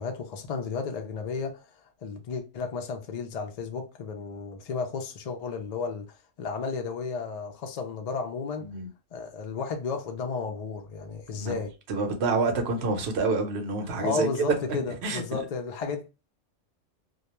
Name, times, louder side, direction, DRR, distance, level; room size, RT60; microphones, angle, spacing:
voice 1, 0.0-1.6 2.0-8.7 9.1-11.7 14.0-16.1, left 5 dB, 75° left, 0.3 m, -33 dB
voice 2, 11.4-14.3 14.7-15.4, right 3 dB, 65° right, 0.9 m, -28 dB
2.2 x 2.2 x 2.9 m
omnidirectional pair, 1.3 m